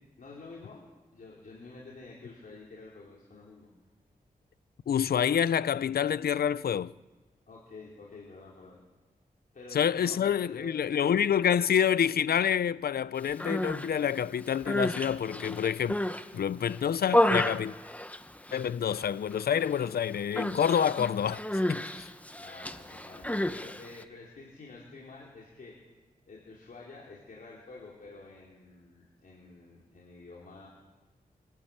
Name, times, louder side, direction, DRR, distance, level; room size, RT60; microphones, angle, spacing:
voice 1, 0.2-0.8 1.1-3.7 7.5-8.8 9.5-11.6 22.3-26.0 26.3-30.7, left 3 dB, 65° left, 4.8 m, -49 dB
voice 2, 4.9-6.9 9.7-16.0 16.3-17.7 18.5-21.4 21.7-22.1, left 8 dB, 80° left, 0.6 m, -27 dB
Human voice, 13.3-13.9 14.5-16.3 16.7-18.7 18.9-19.4 19.7-19.9 20.4-24.0, left 1 dB, 10° left, 1.3 m, -31 dB
25.0 x 13.0 x 9.1 m
cardioid pair, 70°, 16 cm